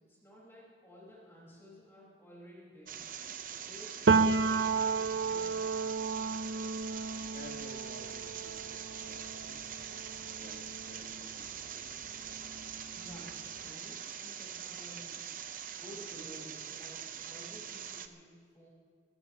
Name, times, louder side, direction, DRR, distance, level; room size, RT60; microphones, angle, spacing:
voice 1, 0.1-3.0 3.6-5.7 12.9-18.7, equal, 15° left, -6 dB, 4.7 m, -53 dB
sound 1, 2.9-18.1, right 8 dB, 50° right, 0.8 m, -43 dB
Piano, 4.1-11.7 12.0-13.6, right 4 dB, 75° right, 0.6 m, -32 dB
voice 2, 7.3-9.7 10.4-12.0, left 1 dB, 50° left, -1 dB, 1.6 m, -54 dB
24.0 x 17.0 x 3.0 m, 2.2 s
head